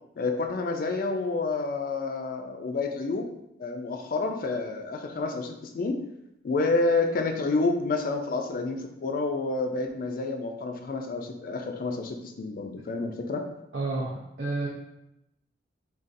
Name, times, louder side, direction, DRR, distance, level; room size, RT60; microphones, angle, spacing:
voice 1, 0.2-3.3 3.6-6.0 6.4-13.4, left 3 dB, 50° left, 4 dB, 0.3 m, -29 dB
voice 2, 13.7-14.7, right 2 dB, 80° right, -5 dB, 0.5 m, -30 dB
3.8 x 2.3 x 2.5 m, 0.86 s
head